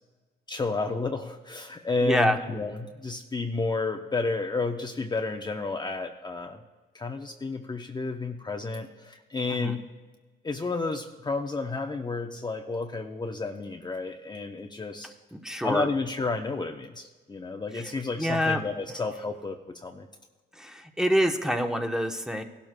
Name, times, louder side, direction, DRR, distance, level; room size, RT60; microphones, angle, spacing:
voice 1, 0.5-6.6 6.9-9.8 10.4-15.1 15.6-20.1, left 3 dB, 20° left, 3 dB, 0.7 m, -31 dB
voice 2, 2.0-2.4 9.5-9.8 15.3-15.9 18.2-18.6 20.6-22.4, equal, 5° right, 4 dB, 1.0 m, -26 dB
17.0 x 12.0 x 2.2 m, 1.3 s
cardioid pair, 90°, 20 cm